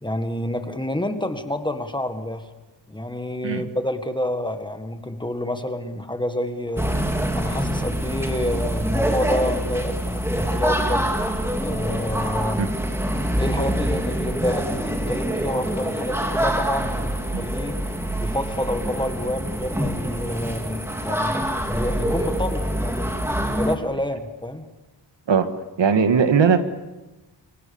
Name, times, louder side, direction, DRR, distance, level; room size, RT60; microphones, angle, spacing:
voice 1, 0.0-2.5 2.9-6.9 7.4-11.1 11.6-12.7 13.3-17.8 18.2-21.4 21.6-23.1 23.6-24.7, left 1 dB, 10° left, 8 dB, 1.7 m, -28 dB
sound 1, 6.8-23.8, right 1 dB, 5° right, 2.1 m, -25 dB
voice 2, 25.8-26.6, right 6 dB, 90° right, 9 dB, 1.9 m, -18 dB
28.0 x 24.0 x 7.2 m, 1.1 s
wide cardioid pair, 165°, 43 cm